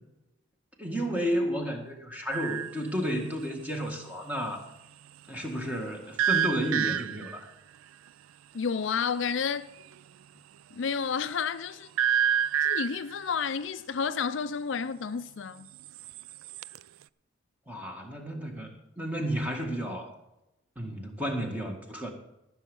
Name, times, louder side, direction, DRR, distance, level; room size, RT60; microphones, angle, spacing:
voice 1, 0.8-4.6 5.3-7.5 17.7-18.7 19.0-20.1 20.8-22.1, equal, 5° right, 1.8 m, -32 dB
sound 1, 2.3-2.8 6.2-7.4 12.0-13.1 15.9-16.8, right 8 dB, 85° right, 0.3 m, -27 dB
voice 2, 8.5-9.7 10.7-12.2 12.6-15.7, left 6 dB, 65° left, 0.4 m, -31 dB
14.5 x 6.3 x 7.1 m
head